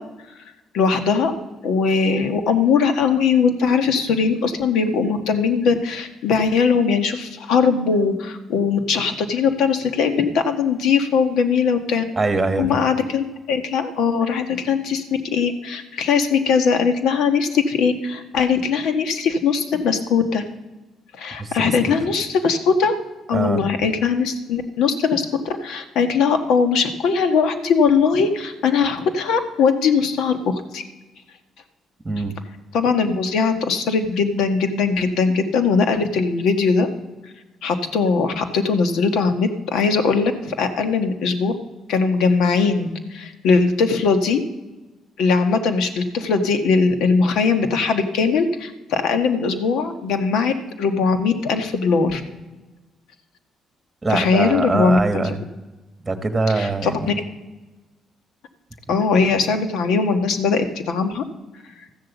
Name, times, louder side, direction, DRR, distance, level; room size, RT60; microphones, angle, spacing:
voice 1, 0.7-1.3 1.6-12.0 12.6-15.0 15.3-20.4 21.2-22.9 23.3-30.8 32.7-36.9 37.6-41.5 41.9-44.4 45.2-52.2 54.1-55.4 56.5-57.1 58.9-61.2, left 5 dB, 80° left, 7 dB, 1.3 m, -20 dB
voice 2, 12.2-12.8 21.4-21.8 23.3-23.9 32.0-32.4 54.0-55.4 56.0-57.1, right 3 dB, 20° right, 7 dB, 1.4 m, -23 dB
13.5 x 7.7 x 7.1 m, 1.2 s
supercardioid pair, 70°, 0 cm